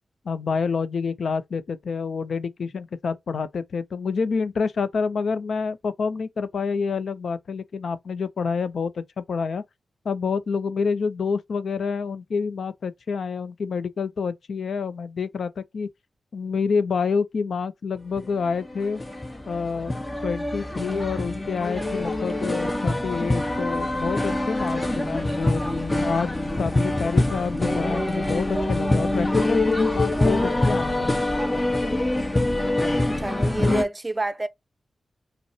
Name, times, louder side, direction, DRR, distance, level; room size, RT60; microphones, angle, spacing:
voice 1, 0.3-9.6 10.0-15.9 16.3-19.0 19.4-19.9 20.2-25.7 26.0-31.2, left 5 dB, 80° left, 0.5 m, -28 dB
sound 1, 18.2-33.8, left 2 dB, 20° left, 0.9 m, -24 dB
voice 2, 33.2-34.5, right 2 dB, 25° right, 0.5 m, -28 dB
5.3 x 2.1 x 2.7 m
cardioid pair, 75°, 0 cm